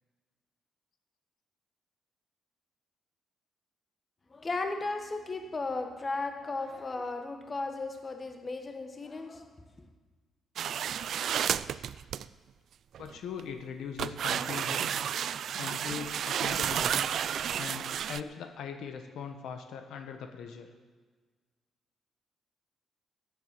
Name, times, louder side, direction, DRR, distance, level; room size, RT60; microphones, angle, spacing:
voice 1, 4.3-9.5, left 3 dB, 30° left, 1.5 m, -35 dB
sound 1, 10.6-12.3 12.9-13.4 14.0-18.2, right 9 dB, 65° right, 0.3 m, -31 dB
voice 2, 13.0-15.0 15.6-17.1 17.6-20.7, left 7 dB, 75° left, 1.2 m, -40 dB
13.5 x 7.9 x 7.5 m
cardioid pair, 90°, 0 cm